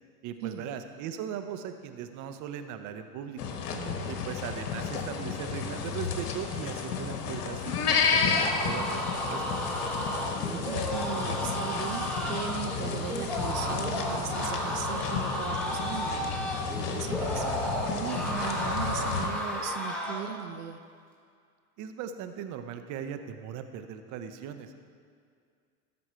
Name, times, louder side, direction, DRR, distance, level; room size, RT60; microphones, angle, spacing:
voice 1, 0.2-3.6 4.0-9.0 9.3-9.6 21.8-24.8, right 8 dB, 40° right, 8 dB, 0.8 m, -39 dB
sound 1, 3.4-19.3, left 6 dB, 75° left, 1.3 m, -32 dB
voice 2, 3.7-4.1 10.5-20.8, right 9 dB, 75° right, 9 dB, 0.7 m, -38 dB
sound 2, 8.2-20.3, equal, ahead, 2.0 m, -33 dB
14.0 x 6.1 x 4.5 m, 2.2 s
hypercardioid pair, 100°, 47 cm